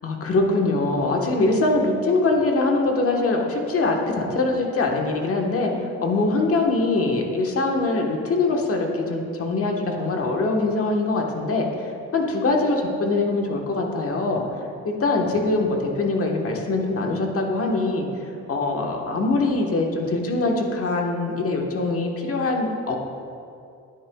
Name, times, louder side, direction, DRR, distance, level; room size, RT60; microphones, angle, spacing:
voice 1, 0.0-5.7 6.0-14.4 14.8-18.1 18.5-23.0, left 2 dB, 50° left, 1 dB, 1.3 m, -23 dB
10.0 x 9.6 x 2.3 m, 2.5 s
cardioid pair, 90°, 30 cm